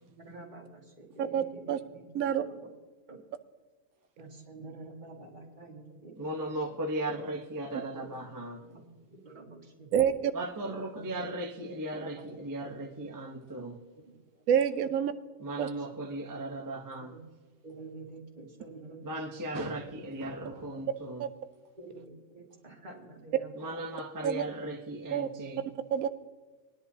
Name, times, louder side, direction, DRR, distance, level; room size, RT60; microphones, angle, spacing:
voice 1, 0.0-2.7 3.1-3.2 4.2-6.5 8.0-8.2 8.6-10.2 11.0-11.1 11.5-11.6 12.0-12.3 12.9-13.0 14.0-14.4 14.8-15.0 15.7-16.0 17.0-17.2 17.6-19.4 19.9-20.0 21.8-23.5, right 3 dB, 35° right, 2.1 m, -49 dB
voice 2, 1.3-1.8 2.1-2.4 9.9-10.1 14.5-15.1 15.6-15.7 21.2-21.3 24.2-24.4 25.1-25.3 25.9-26.1, right 9 dB, 85° right, 1.0 m, -27 dB
voice 3, 6.2-8.6 10.3-13.8 15.4-17.1 19.0-21.3 23.6-25.7, right 1 dB, 15° right, 0.8 m, -37 dB
20.0 x 10.5 x 2.8 m
omnidirectional pair, 1.4 m